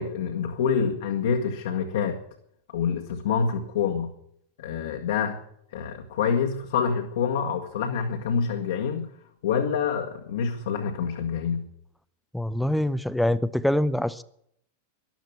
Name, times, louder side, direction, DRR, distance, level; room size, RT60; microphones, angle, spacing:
voice 1, 0.0-2.2 2.7-4.1 4.6-5.4 5.7-9.1 9.4-11.7, left 6 dB, 60° left, 3 dB, 1.6 m, -26 dB
voice 2, 12.3-14.2, left 1 dB, ahead, 14 dB, 0.6 m, -24 dB
14.0 x 12.0 x 8.3 m, 0.69 s
figure-of-eight pair, 90°, 0 cm